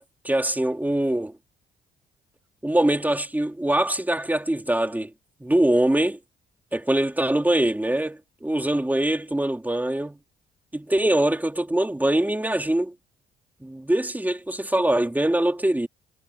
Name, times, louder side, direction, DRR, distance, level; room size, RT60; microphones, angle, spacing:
voice 1, 0.0-1.3 2.6-5.1 5.4-6.2 6.7-10.2 10.7-12.9 13.6-15.9, right 1 dB, 10° right, 3.6 m, -23 dB
cardioid pair, 90°, 20 cm